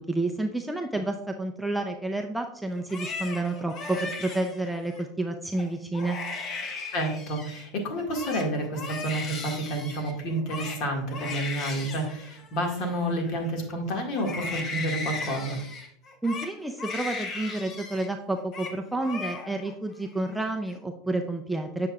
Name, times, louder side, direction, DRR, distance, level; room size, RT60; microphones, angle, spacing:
voice 1, 0.0-6.2 16.2-21.9, right 2 dB, 5° right, 3 dB, 0.5 m, -30 dB
Crying sobbing, 2.8-5.0 5.5-5.7 5.9-7.7 8.0-13.7 14.1-18.1 18.4-18.8 19.0-19.7 20.1-20.7, left 3 dB, 35° left, 0.9 m, -37 dB
voice 2, 6.9-15.6, right 1 dB, 50° left, 2 dB, 1.9 m, -30 dB
8.3 x 6.7 x 2.4 m, 0.67 s
supercardioid pair, 140°, 0 cm